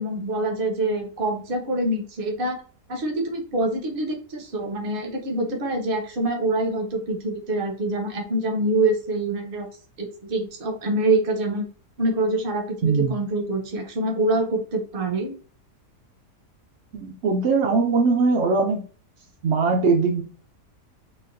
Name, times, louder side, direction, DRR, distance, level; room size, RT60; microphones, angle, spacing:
voice 1, 0.0-2.6 2.9-9.7 10.0-11.7 12.0-15.4, right 2 dB, 50° right, 2 dB, 0.7 m, -25 dB
voice 2, 12.8-13.2 16.9-18.8 19.4-20.2, right 4 dB, 85° right, 2 dB, 0.6 m, -21 dB
4.0 x 2.3 x 2.6 m, 0.40 s
omnidirectional pair, 1.7 m